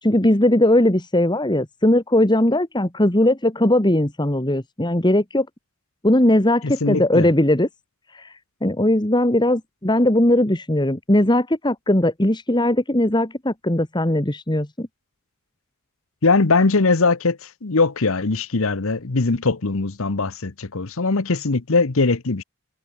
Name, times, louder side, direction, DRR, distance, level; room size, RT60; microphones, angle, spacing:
voice 1, 0.0-5.5 6.0-7.7 8.1-14.9, left 1 dB, 20° left, 1.8 m, -19 dB
voice 2, 6.6-7.3 16.2-22.4, left 3 dB, 65° left, 1.0 m, -21 dB
head